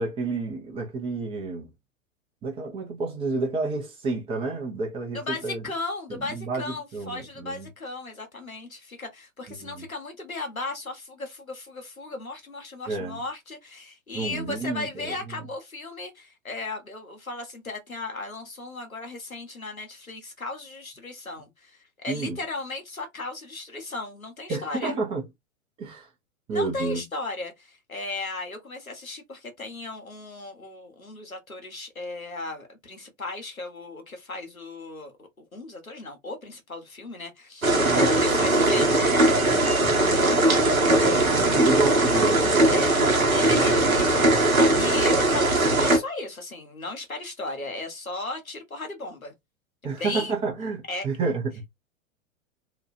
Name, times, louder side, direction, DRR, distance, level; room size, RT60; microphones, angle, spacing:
voice 1, 0.0-1.7 2.4-5.6 6.1-7.7 9.6-9.9 12.9-13.2 14.1-15.5 22.1-22.4 24.5-25.2 25.8-26.1 26.5-27.0 37.9-38.2 40.8-43.1 49.8-51.6, right 3 dB, 15° right, 0.5 m, -30 dB
voice 2, 5.1-25.0 26.5-39.1 42.7-43.0 43.3-49.3 49.8-50.3 50.9-51.1, left 2 dB, 90° left, 1.1 m, -36 dB
sound 1, 37.6-46.0, right 2 dB, 85° right, 0.9 m, -20 dB
2.7 x 2.3 x 2.6 m
figure-of-eight pair, 100°, 40 cm